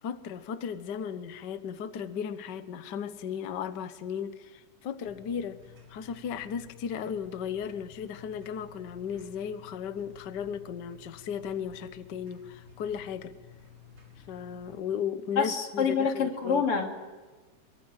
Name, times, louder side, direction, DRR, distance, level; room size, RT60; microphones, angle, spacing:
voice 1, 0.0-5.6 5.9-13.3 14.3-16.6, left 7 dB, 90° left, 10 dB, 0.9 m, -35 dB
sound 1, 5.0-14.8, left 7 dB, 35° right, 7.0 m, -53 dB
voice 2, 15.4-16.9, left 6 dB, 45° left, 2 dB, 3.7 m, -26 dB
25.0 x 23.0 x 9.0 m, 1.3 s
omnidirectional pair, 3.7 m